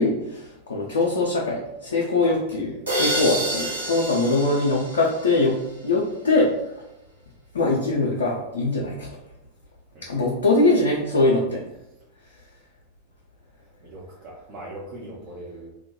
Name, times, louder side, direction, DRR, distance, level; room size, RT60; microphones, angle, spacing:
voice 1, 0.0-6.8 7.5-9.1 10.0-11.6, left 2 dB, 70° left, -2 dB, 0.4 m, -22 dB
sound 1, 2.9-5.7, right 1 dB, 70° right, 0.8 m, -28 dB
voice 2, 13.6-15.7, right 1 dB, 40° right, -5 dB, 0.6 m, -41 dB
2.2 x 2.1 x 2.8 m, 0.89 s
figure-of-eight pair, 90°, 0 cm